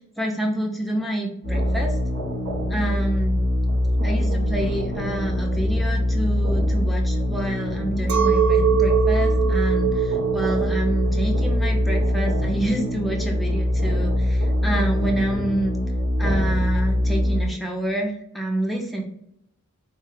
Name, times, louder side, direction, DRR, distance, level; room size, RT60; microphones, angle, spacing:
voice 1, 0.2-1.9 2.7-3.4 4.0-15.8 16.2-19.0, right 1 dB, ahead, 0 dB, 0.5 m, -27 dB
sound 1, 1.4-17.5, left 1 dB, 65° right, 0.9 m, -23 dB
Chink clink, 8.1-13.6, right 8 dB, 80° right, 0.4 m, -24 dB
3.9 x 2.3 x 3.1 m, 0.73 s
head